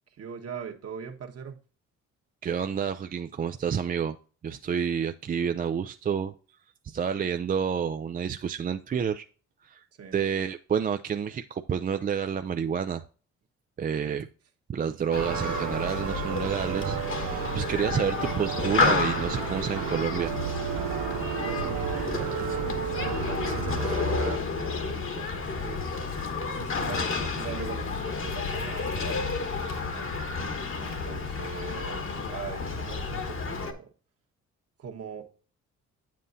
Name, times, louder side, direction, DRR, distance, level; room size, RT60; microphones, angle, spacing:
voice 1, 0.2-1.6 10.0-10.2 14.0-14.3 21.4-25.8 26.4-30.2 30.8-33.9 34.8-35.2, right 6 dB, 55° right, 4 dB, 1.4 m, -41 dB
voice 2, 2.4-4.2 4.4-6.3 6.8-9.3 9.6-9.8 10.1-13.0 13.8-14.2 14.7-20.3, right 7 dB, 30° right, 8 dB, 0.4 m, -29 dB
Human group actions, 15.1-33.7, left 4 dB, 45° left, 1.3 m, -31 dB
sound 1, 15.2-24.4, right 11 dB, 80° right, 0.5 m, -33 dB
8.4 x 7.5 x 2.7 m, 0.38 s
cardioid pair, 90°, 30 cm